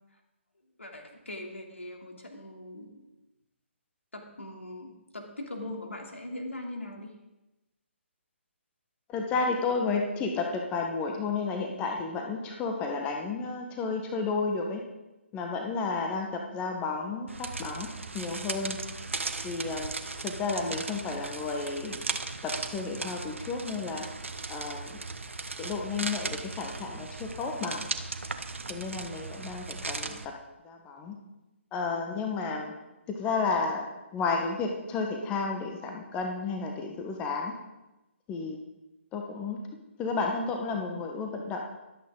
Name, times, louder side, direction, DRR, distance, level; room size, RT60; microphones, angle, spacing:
voice 1, 0.8-3.0 4.1-7.1 30.0-30.2, left 1 dB, 75° left, 2 dB, 3.0 m, -41 dB
voice 2, 9.1-14.8 15.3-17.9 18.1-18.8 19.4-19.9 20.2-22.0 22.4-24.1 24.5-25.0 25.6-27.9 28.7-30.3 30.6-31.2 31.7-32.7 33.1-33.9 34.1-37.5 38.3-38.6 39.1-39.6 40.0-41.6, left 4 dB, 15° left, 2 dB, 1.3 m, -32 dB
sound 1, 17.3-30.2, right 3 dB, 70° right, 1.2 m, -37 dB
24.0 x 8.7 x 3.9 m, 1.0 s
figure-of-eight pair, 140°, 7 cm